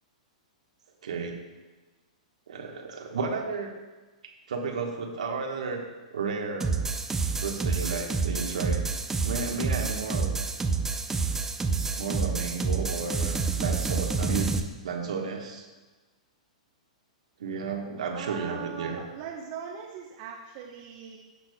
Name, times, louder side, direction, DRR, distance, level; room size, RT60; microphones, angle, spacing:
voice 1, 1.0-1.3 2.5-3.7 4.5-5.8 6.1-6.7 7.4-8.9 9.2-10.4 12.0-14.6 14.8-15.7 17.4-19.0, right 4 dB, 70° right, 1 dB, 1.2 m, -32 dB
sound 1, 6.6-14.6, right 4 dB, 10° right, 0.5 m, -28 dB
voice 2, 18.1-21.2, right 8 dB, 45° right, -1 dB, 1.0 m, -40 dB
15.0 x 6.0 x 2.3 m, 1.2 s
hypercardioid pair, 110°, 4 cm